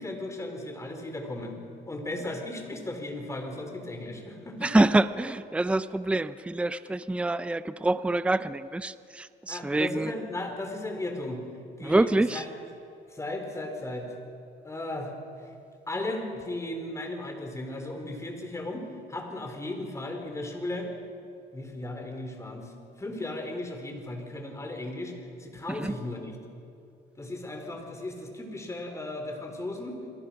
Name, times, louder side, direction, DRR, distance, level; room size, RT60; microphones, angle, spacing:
voice 1, 0.0-1.6 1.9-4.8 9.5-11.4 11.8-12.4 13.1-14.2 14.6-15.5 15.9-20.9 21.5-22.7 23.0-25.1 25.4-26.4 27.2-30.0, left 2 dB, 15° left, 3 dB, 4.8 m, -36 dB
voice 2, 4.6-10.1 11.8-12.4 25.7-25.9, right 2 dB, 5° right, 13 dB, 0.6 m, -26 dB
30.0 x 22.5 x 6.0 m, 2.5 s
cardioid pair, 110°, 17 cm